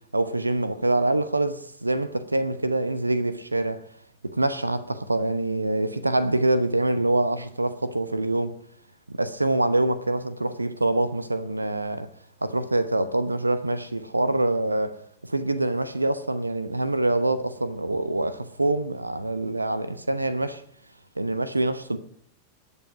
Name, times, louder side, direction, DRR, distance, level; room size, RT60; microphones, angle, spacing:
voice 1, 0.1-3.8 4.2-8.5 9.1-12.1 12.4-20.6 21.2-22.0, right 2 dB, 85° right, 0.8 m, -25 dB
20.0 x 8.5 x 4.9 m
figure-of-eight pair, 90°, 0 cm